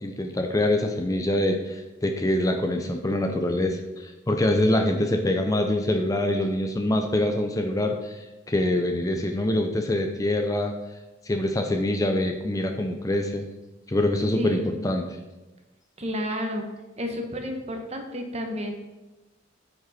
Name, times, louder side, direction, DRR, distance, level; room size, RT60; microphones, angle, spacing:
voice 1, 0.0-10.7 11.3-13.5 13.9-15.2, left 1 dB, 20° left, 4 dB, 0.5 m, -25 dB
voice 2, 14.4-14.8 16.0-16.6 17.0-18.7, equal, 35° right, 4 dB, 1.1 m, -31 dB
9.2 x 5.1 x 4.2 m, 1.1 s
head